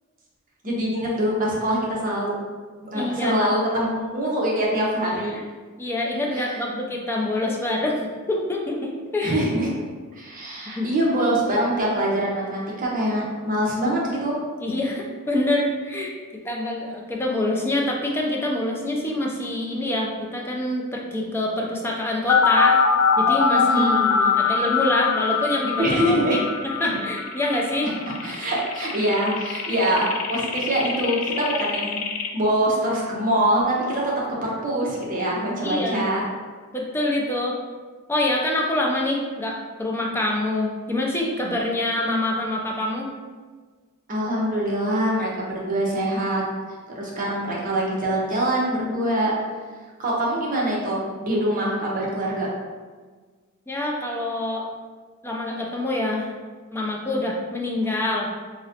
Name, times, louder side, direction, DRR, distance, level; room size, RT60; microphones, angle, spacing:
voice 1, 0.6-2.3 2.8-5.3 6.3-6.4 9.2-9.8 10.2-14.4 23.5-24.0 25.8-26.4 26.9-27.0 28.2-32.0 32.3-34.1 34.4-36.2 44.1-46.4 46.9-49.3 50.0-52.5, right 1 dB, 40° right, -4 dB, 0.6 m, -24 dB
voice 2, 2.9-3.4 5.3-5.4 5.8-8.0 8.3-9.4 10.7-10.9 14.6-22.8 23.2-27.9 35.6-36.3 36.7-37.6 38.1-43.1 53.7-54.7 55.2-56.3 56.7-58.3, left 1 dB, 10° left, -1 dB, 0.3 m, -26 dB
sound 1, 22.3-32.3, left 5 dB, 80° left, 0.4 m, -23 dB
3.7 x 2.1 x 2.7 m, 1.5 s
head